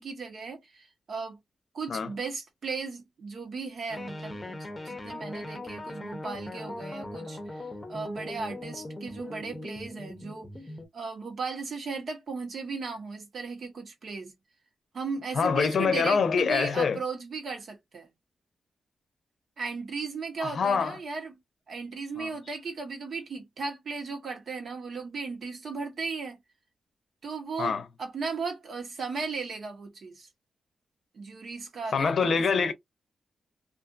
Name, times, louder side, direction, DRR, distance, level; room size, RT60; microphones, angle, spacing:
voice 1, 0.0-1.4 1.7-4.6 4.8-10.5 10.9-14.3 14.9-18.1 19.6-21.3 21.7-26.4 27.2-30.3 31.1-32.3, right 4 dB, 65° right, 1.1 m, -36 dB
sound 1, 3.9-10.9, left 1 dB, 20° left, 0.7 m, -40 dB
voice 2, 15.3-17.0 20.4-21.0 22.2-22.3 27.6-27.9 31.9-32.7, left 5 dB, 70° left, 0.6 m, -25 dB
2.5 x 2.5 x 2.4 m
cardioid pair, 80°, 0 cm